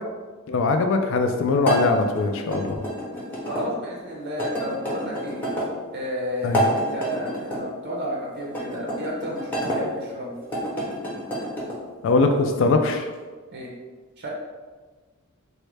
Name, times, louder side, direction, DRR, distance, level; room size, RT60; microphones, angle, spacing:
voice 1, 0.5-2.8 6.4-6.6 12.0-13.1, left 3 dB, 60° left, 5 dB, 0.3 m, -21 dB
sound 1, 1.6-3.6 4.4-5.7 6.4-7.6 8.5-9.8 10.4-11.8, equal, 10° left, 0.7 m, -28 dB
voice 2, 3.5-5.5 5.9-10.4 13.5-13.7 14.2-14.3, equal, 50° right, -3 dB, 0.6 m, -32 dB
3.5 x 2.1 x 3.2 m, 1.4 s
head